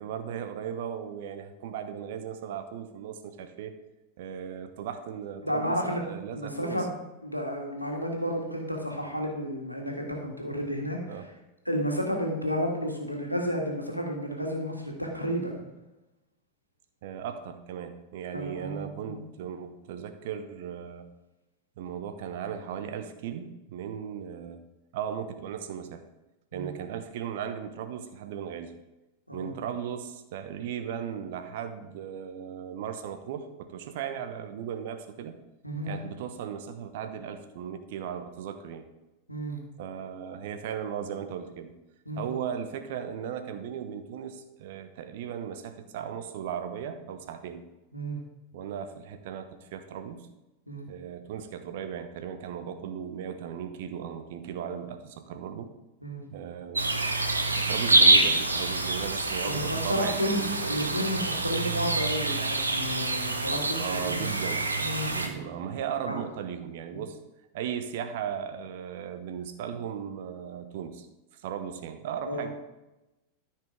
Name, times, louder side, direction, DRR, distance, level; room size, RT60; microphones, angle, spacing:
voice 1, 0.0-3.7 4.2-6.9 11.1-11.3 17.0-21.1 21.8-24.6 24.9-26.0 26.5-28.7 29.3-35.4 35.8-38.9 39.8-41.7 42.1-47.6 48.5-50.3 50.9-55.7 56.3-56.9 57.5-60.8 63.8-64.7 65.1-67.2 67.5-71.1 71.3-72.6, right 8 dB, 50° right, 8 dB, 1.0 m, -37 dB
voice 2, 5.4-6.0 6.3-6.9 7.2-11.2 11.7-15.6 18.3-19.2 26.5-26.7 29.3-29.5 35.6-35.9 39.3-39.6 42.1-42.2 47.9-48.2 50.7-50.9 56.0-56.2 59.4-64.2 64.8-65.4 66.1-66.2 66.9-67.0 72.3-72.5, equal, 90° left, 0 dB, 1.7 m, -32 dB
sound 1, 56.7-65.3, right 2 dB, 80° right, 1.0 m, -26 dB
13.5 x 5.8 x 3.7 m, 1.0 s
figure-of-eight pair, 90°, 0 cm